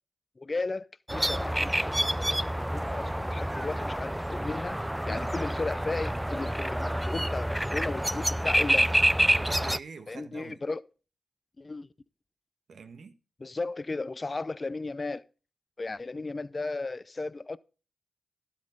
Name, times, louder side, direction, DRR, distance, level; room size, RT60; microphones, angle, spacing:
voice 1, 0.4-9.0 10.1-10.8 11.6-11.9 13.4-15.2 15.8-17.6, left 3 dB, 35° left, 0.7 m, -35 dB
sound 1, 1.1-9.8, equal, 5° right, 0.4 m, -28 dB
voice 2, 5.0-5.5 9.4-10.6 12.7-13.1, right 5 dB, 70° right, 1.4 m, -45 dB
12.5 x 8.7 x 3.9 m
cardioid pair, 55°, 0 cm